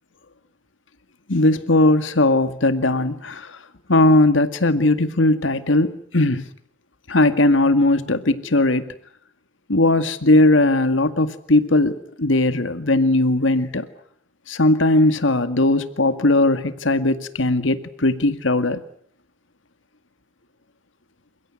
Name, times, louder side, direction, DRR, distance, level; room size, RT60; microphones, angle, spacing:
voice 1, 1.3-3.5 3.9-6.4 7.1-8.8 9.7-13.9 14.5-18.8, left 2 dB, 85° left, 11 dB, 2.0 m, -18 dB
29.0 x 16.5 x 9.6 m, 0.62 s
head